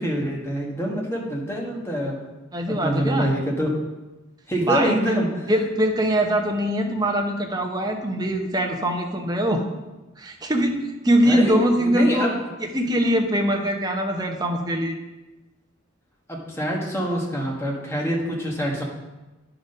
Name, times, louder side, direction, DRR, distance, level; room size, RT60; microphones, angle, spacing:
voice 1, 0.0-2.2 2.7-3.7 4.5-5.3 11.2-12.4 16.3-18.8, equal, 15° left, -2 dB, 1.3 m, -25 dB
voice 2, 2.5-3.3 4.6-5.2 5.5-9.6 10.2-12.3 12.6-15.0, equal, 20° right, 2 dB, 0.8 m, -22 dB
9.5 x 4.0 x 5.4 m, 1.1 s
head